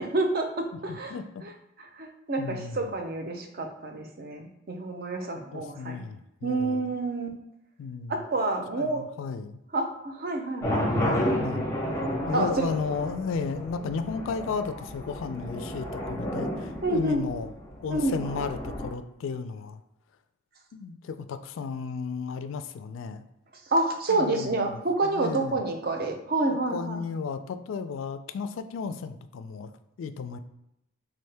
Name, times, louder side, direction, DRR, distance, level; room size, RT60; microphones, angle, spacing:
voice 1, 0.0-1.1 2.0-6.0 6.4-7.3 8.1-9.0 9.7-10.9 12.3-12.8 16.8-17.3 17.9-18.2 23.7-27.0, right 2 dB, 50° right, 4 dB, 0.6 m, -28 dB
voice 2, 0.9-1.4 2.4-2.9 5.5-6.9 7.8-8.2 8.8-9.6 11.4-11.6 12.3-17.5 17.8-19.8 20.7-23.2 24.1-25.6 26.5-29.7 30.0-30.4, left 5 dB, 75° left, 10 dB, 0.3 m, -34 dB
sound 1, 10.6-18.9, equal, 15° left, 0.5 m, -31 dB
3.7 x 2.7 x 3.3 m, 0.85 s
head